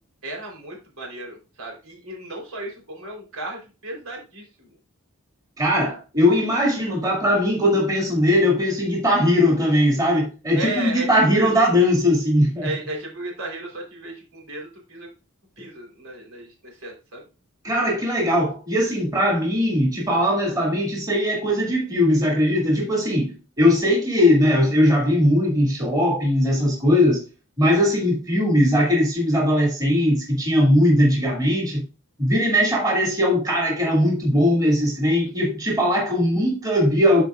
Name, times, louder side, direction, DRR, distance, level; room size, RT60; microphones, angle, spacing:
voice 1, 0.2-4.7 10.5-11.5 12.6-15.1 15.6-17.2, right 1 dB, 80° right, 3.5 m, -34 dB
voice 2, 5.6-12.7 17.6-27.2 27.6-31.8 32.2-37.2, left 1 dB, 15° right, 2.3 m, -20 dB
12.5 x 4.7 x 2.4 m
head